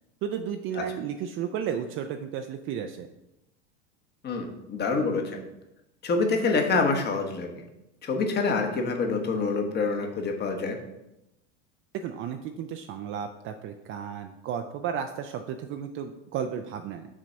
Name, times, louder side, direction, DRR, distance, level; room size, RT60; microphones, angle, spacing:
voice 1, 0.2-3.1 11.9-17.1, right 8 dB, 35° right, 6 dB, 0.5 m, -33 dB
voice 2, 4.2-5.4 6.0-7.6 8.0-10.8, left 4 dB, 30° left, 3 dB, 1.2 m, -26 dB
6.2 x 4.0 x 5.7 m, 0.91 s
hypercardioid pair, 105°, 36 cm